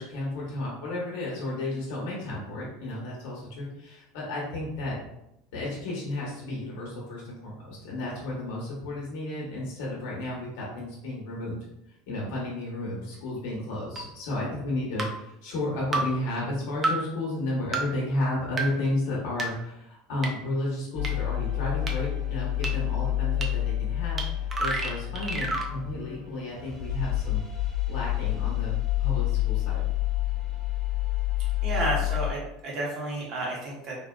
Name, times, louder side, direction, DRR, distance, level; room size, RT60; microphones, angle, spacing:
voice 1, 0.0-5.0 5.5-11.6 12.1-27.4 27.9-28.7 29.0-29.8, left 1 dB, 65° left, -4 dB, 1.0 m, -32 dB
sound 1, 14.0-14.1 15.0-15.1 15.9-16.0 16.8-16.9 17.7-17.8 18.6-18.7 19.4-19.5 20.2-20.3 21.0-21.1 21.9-22.0 22.6-22.7 23.4-23.5 24.2-24.3 24.5-25.7, right 3 dB, 20° right, 0.3 m, -28 dB
sound 2, 20.9-32.3, left 14 dB, ahead, 1.1 m, -28 dB
voice 2, 31.6-34.0, right 2 dB, 35° right, -3 dB, 0.9 m, -31 dB
3.6 x 2.1 x 2.3 m, 0.84 s
cardioid pair, 180°, 0 cm